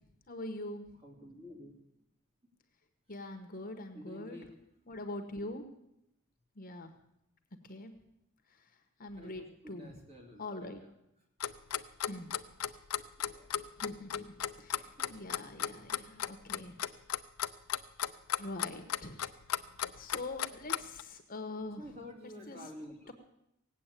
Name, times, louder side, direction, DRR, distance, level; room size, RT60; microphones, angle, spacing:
voice 1, 0.3-0.8 3.1-4.4 4.9-5.7 6.5-6.9 7.6-7.9 8.5-8.7 9.0-10.0 10.4-10.8 12.1-12.3 13.8-16.8 18.4-19.2 20.0-21.8 22.5-22.6 23.1-23.2, left 2 dB, 40° left, 6 dB, 1.3 m, -43 dB
voice 2, 1.0-1.7 3.9-4.5 9.1-10.9 13.2-13.7 14.7-15.8 21.8-23.1, left 1 dB, 30° right, 1 dB, 2.9 m, -51 dB
Clock, 11.4-21.0, left 10 dB, 80° left, 0.6 m, -35 dB
18.0 x 8.3 x 8.4 m, 0.83 s
head